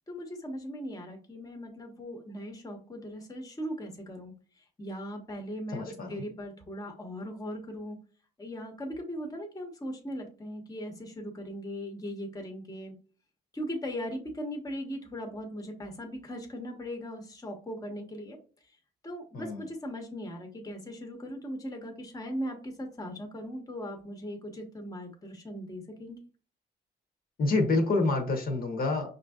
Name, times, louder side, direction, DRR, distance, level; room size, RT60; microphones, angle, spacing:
voice 1, 0.1-8.0 8.4-12.9 13.5-18.4 19.0-26.2, equal, 20° left, 3 dB, 0.9 m, -39 dB
voice 2, 5.7-6.2 19.3-19.6 27.4-29.1, left 3 dB, 50° left, 3 dB, 0.9 m, -27 dB
5.1 x 2.6 x 2.3 m, 0.39 s
cardioid pair, 90°, 20 cm